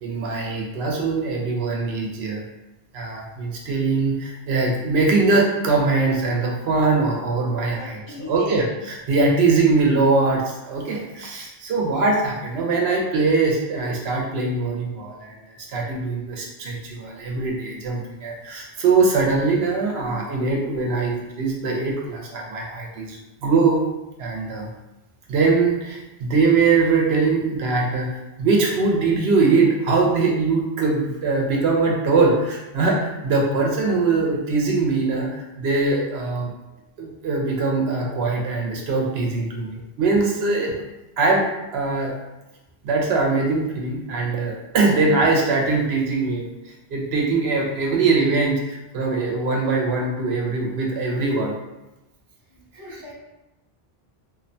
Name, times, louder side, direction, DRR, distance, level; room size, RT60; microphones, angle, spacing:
voice 1, 0.0-2.4 2.9-8.0 8.3-8.6 9.1-15.3 15.7-23.8 24.2-24.7 25.3-36.5 37.0-40.7 41.2-41.4 41.7-42.2 42.8-51.5, right 3 dB, 85° right, -1 dB, 0.8 m, -22 dB
voice 2, 6.9-7.2 7.6-8.7 9.6-9.7 52.5-53.1, left 2 dB, 20° left, -10 dB, 0.6 m, -39 dB
2.5 x 2.1 x 2.6 m, 1.0 s
omnidirectional pair, 1.0 m